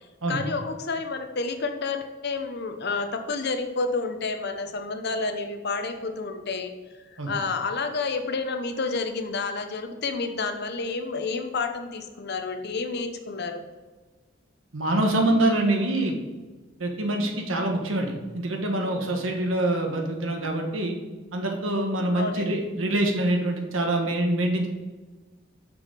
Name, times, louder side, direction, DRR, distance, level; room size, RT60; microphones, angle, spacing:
voice 1, 0.0-13.7 22.1-22.5, left 4 dB, 55° left, 7 dB, 0.8 m, -30 dB
voice 2, 14.7-16.2 16.8-21.0 21.3-24.7, right 1 dB, 80° right, 3 dB, 1.4 m, -25 dB
6.3 x 6.0 x 5.0 m, 1.3 s
head